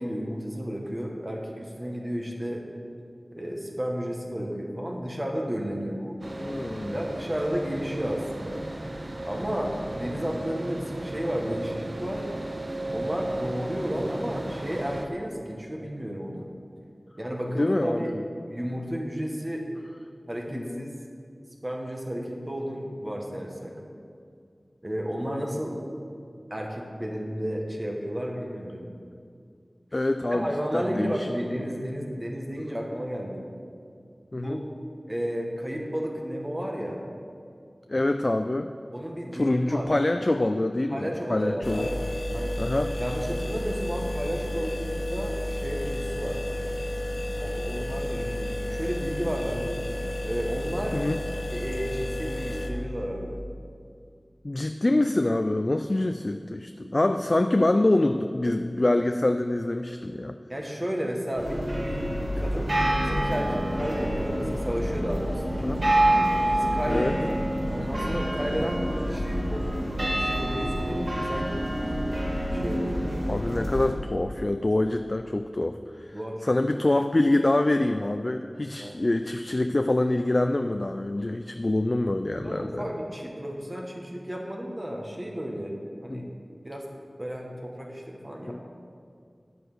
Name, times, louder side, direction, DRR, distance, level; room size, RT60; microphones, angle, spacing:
voice 1, 0.0-2.6 3.3-6.2 6.8-8.6 9.2-12.3 12.9-16.5 17.2-18.1 18.5-19.7 20.3-20.9 21.6-23.7 24.8-25.8 26.5-28.8 30.3-33.5 34.3-34.6 35.1-37.0 38.9-39.9 40.9-42.6 43.0-46.4 47.3-49.8 50.2-51.0 51.5-53.4 60.5-65.8 66.4-67.4 67.7-71.5 72.5-73.1 76.1-76.9 78.7-79.0 82.4-85.7 86.0-86.3 86.6-86.9 87.2-88.7, equal, 25° right, 0 dB, 1.6 m, -32 dB
sound 1, 6.2-15.1, right 1 dB, 45° right, 0.7 m, -35 dB
voice 2, 6.4-7.0 17.6-18.2 20.5-20.9 29.9-31.3 34.3-34.6 37.9-38.7 39.3-41.9 42.6-42.9 50.9-51.2 54.4-60.4 65.6-65.8 66.9-67.2 73.3-76.1 76.4-82.8 86.1-86.3 88.4-88.6, left 2 dB, 45° left, 7 dB, 0.4 m, -25 dB
sound 2, 41.6-52.7, left 1 dB, 90° left, 1.1 m, -31 dB
sound 3, 61.4-73.9, right 1 dB, 60° right, 2.2 m, -27 dB
9.2 x 7.8 x 6.3 m, 2.3 s
wide cardioid pair, 55°, 0 cm